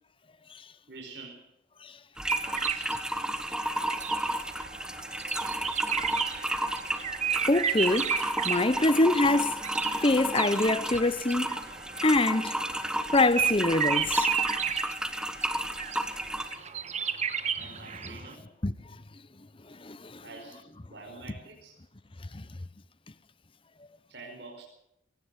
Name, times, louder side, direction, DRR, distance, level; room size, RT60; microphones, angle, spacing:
voice 1, 0.9-1.5 4.0-4.1 17.6-18.4 20.2-21.8 24.1-24.6, right 3 dB, 60° right, 4.9 m, -46 dB
sound 1, 2.2-16.6, right 1 dB, 5° right, 1.3 m, -32 dB
sound 2, 2.3-18.3, right 7 dB, 35° right, 1.4 m, -33 dB
voice 2, 7.5-9.6 10.0-11.6 12.0-12.6 13.1-14.3 18.6-18.7 19.7-20.2 22.3-22.4, left 2 dB, 30° left, 0.9 m, -25 dB
22.5 x 18.0 x 6.7 m
head